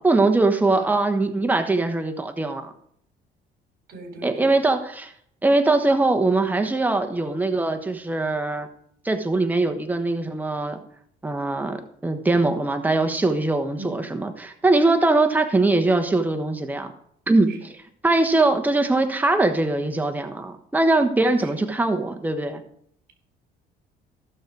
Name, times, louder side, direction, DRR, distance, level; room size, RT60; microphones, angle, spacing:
voice 1, 0.0-2.7 4.2-5.1 5.4-8.7 9.0-10.8 11.2-16.9 17.3-17.5 18.0-22.6, right 2 dB, 10° right, 6 dB, 1.2 m, -21 dB
voice 2, 0.7-1.0 3.9-4.6 13.7-14.1 17.5-17.7 21.4-21.6, right 4 dB, 65° right, 3 dB, 3.7 m, -39 dB
15.5 x 6.5 x 4.7 m, 0.67 s
cardioid pair, 110°, 17 cm